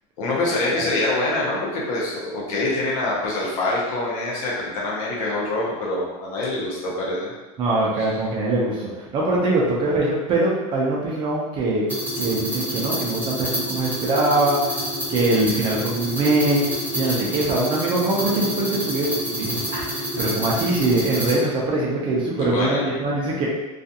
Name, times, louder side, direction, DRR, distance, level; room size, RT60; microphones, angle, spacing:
voice 1, 0.2-7.3 8.0-8.2 17.1-17.2 22.4-22.9, left 2 dB, 85° left, -4 dB, 0.7 m, -25 dB
voice 2, 7.6-11.9 12.2-14.6 15.1-23.5, right 2 dB, 30° right, -4 dB, 0.4 m, -22 dB
sound 1, 11.9-21.3, equal, 10° right, 0.9 m, -28 dB
2.4 x 2.3 x 2.7 m, 1.1 s
cardioid pair, 165°, 17 cm